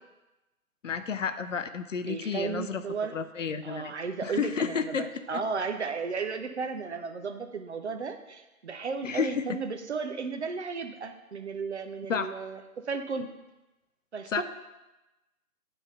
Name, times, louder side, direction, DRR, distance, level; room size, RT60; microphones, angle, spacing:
voice 1, 0.8-2.8 3.1-3.9 4.2-5.1 9.0-9.6 12.1-12.3 14.3-14.4, left 6 dB, 60° left, 10 dB, 0.6 m, -31 dB
voice 2, 2.1-3.1 3.6-13.3 14.1-14.4, right 5 dB, 50° right, 6 dB, 0.7 m, -34 dB
9.4 x 3.4 x 5.4 m, 1.0 s
figure-of-eight pair, 150°, 43 cm